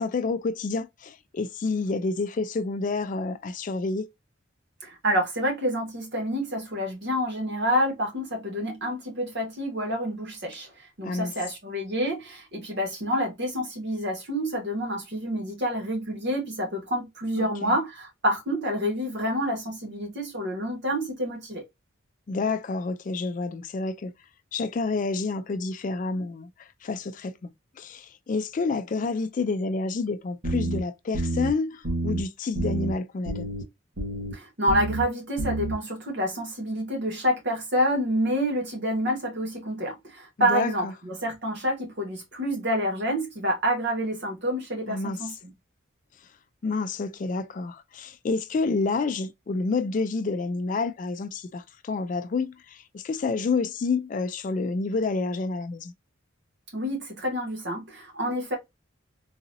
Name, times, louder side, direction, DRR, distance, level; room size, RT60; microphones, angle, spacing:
voice 1, 0.0-4.1 11.0-11.3 17.4-17.7 22.3-24.1 24.5-27.5 27.8-33.5 40.4-40.9 44.9-45.3 46.6-55.9, left 3 dB, 40° left, 0.3 m, -29 dB
voice 2, 4.8-10.7 11.0-21.6 34.3-45.5 56.7-58.6, equal, 55° right, 1.5 m, -28 dB
sound 1, 30.4-30.8 31.1-31.5 31.8-32.2 32.5-32.9 33.3-33.6 34.0-34.3 34.7-35.0 35.4-35.7, right 2 dB, 80° right, 1.3 m, -28 dB
3.9 x 2.6 x 2.6 m
head